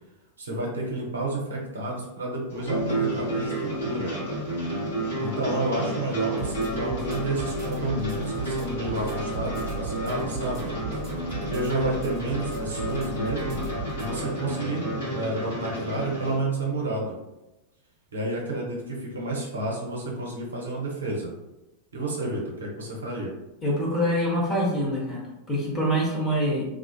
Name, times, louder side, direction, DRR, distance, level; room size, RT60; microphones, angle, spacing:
voice 1, 0.4-4.1 5.2-10.7 11.5-13.6 14.0-17.2 18.1-21.3 21.9-23.3, right 2 dB, 70° right, -2 dB, 0.6 m, -30 dB
sound 1, 2.5-16.4, right 1 dB, 60° left, 1.0 m, -31 dB
sound 2, 6.4-14.2, right 3 dB, 30° right, 0.8 m, -37 dB
voice 2, 23.6-26.7, equal, 20° left, -4 dB, 0.9 m, -25 dB
2.4 x 2.3 x 2.3 m, 0.95 s
figure-of-eight pair, 90°, 0 cm